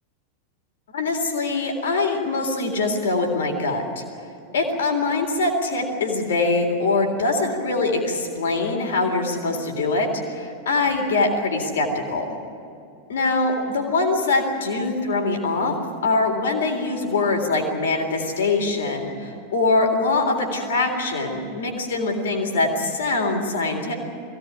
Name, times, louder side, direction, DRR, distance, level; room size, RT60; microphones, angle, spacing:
voice 1, 0.9-4.0 4.5-12.3 13.1-15.7 16.0-23.9, left 3 dB, 60° left, 3 dB, 3.6 m, -23 dB
22.0 x 17.0 x 10.0 m, 2.7 s
figure-of-eight pair, 90°, 0 cm